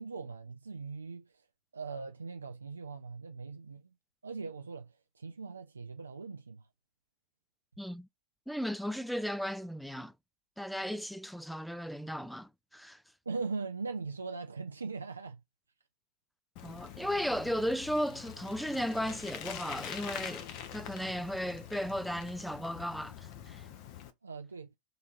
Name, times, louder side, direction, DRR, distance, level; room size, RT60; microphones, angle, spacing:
voice 1, 0.0-1.5 1.7-3.9 4.2-6.6 13.3-15.4 24.2-24.7, right 4 dB, 80° right, 0.4 m, -40 dB
voice 2, 7.8-8.1 8.5-10.1 10.6-13.0 16.6-23.6, equal, ahead, 0.3 m, -35 dB
Bicycle, 16.6-24.1, left 9 dB, 40° left, 0.8 m, -45 dB
3.7 x 2.8 x 4.3 m
figure-of-eight pair, 95°, 0 cm